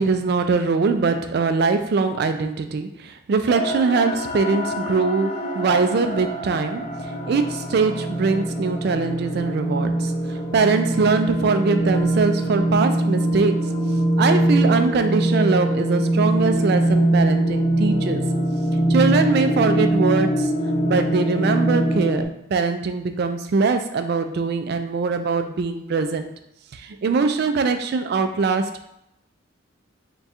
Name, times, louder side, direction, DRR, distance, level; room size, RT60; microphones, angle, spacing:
voice 1, 0.0-6.8 7.3-13.8 14.2-18.2 18.9-20.5 20.9-26.3 26.7-28.9, right 4 dB, 50° right, 7 dB, 0.3 m, -22 dB
sound 1, 3.5-22.2, right 1 dB, 35° left, 0.4 m, -23 dB
3.6 x 2.3 x 4.1 m, 0.79 s
head